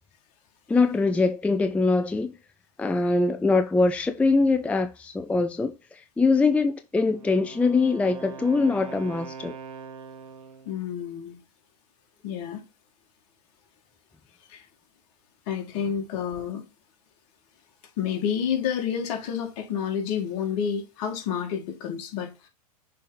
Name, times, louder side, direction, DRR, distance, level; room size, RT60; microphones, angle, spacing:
voice 1, 0.7-2.3 2.8-9.5, left 3 dB, 5° left, 0.4 m, -23 dB
Wind instrument woodwind instrument, 7.0-10.8, right 5 dB, 65° right, 1.3 m, -42 dB
voice 2, 10.7-11.4 12.2-12.6 14.5-14.6 15.5-16.6 18.0-22.5, left 8 dB, 55° left, 2.0 m, -29 dB
6.6 x 3.7 x 4.0 m
hypercardioid pair, 110°, 20 cm